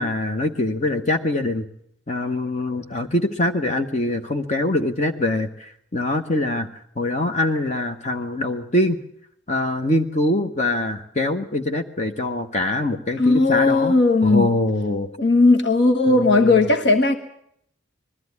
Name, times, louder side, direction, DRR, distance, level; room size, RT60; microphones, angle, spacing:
voice 1, 0.0-1.7 2.1-6.7 7.0-9.0 9.5-14.0 14.2-15.1 16.1-16.6, left 1 dB, 35° left, 5 dB, 1.0 m, -23 dB
voice 2, 13.2-14.5 15.2-17.2, left 3 dB, 65° left, 5 dB, 1.4 m, -17 dB
20.5 x 14.0 x 9.6 m, 0.71 s
head